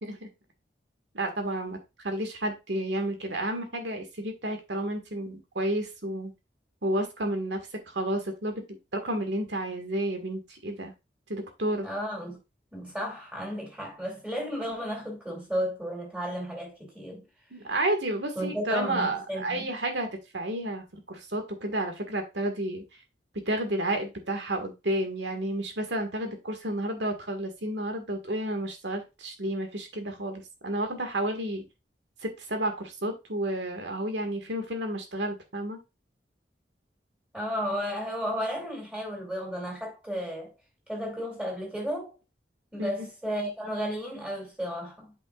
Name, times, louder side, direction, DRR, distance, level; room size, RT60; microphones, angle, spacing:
voice 1, 1.1-6.3 6.8-10.9 11.3-11.9 17.5-20.1 20.3-22.8 23.4-31.7 32.2-35.8 42.8-42.9, right 1 dB, 85° right, 1.8 m, -31 dB
voice 2, 11.8-12.4 12.7-17.3 18.4-19.7 37.3-40.5 40.9-42.1 42.7-45.1, equal, 5° right, 2.6 m, -33 dB
8.3 x 5.5 x 2.4 m
head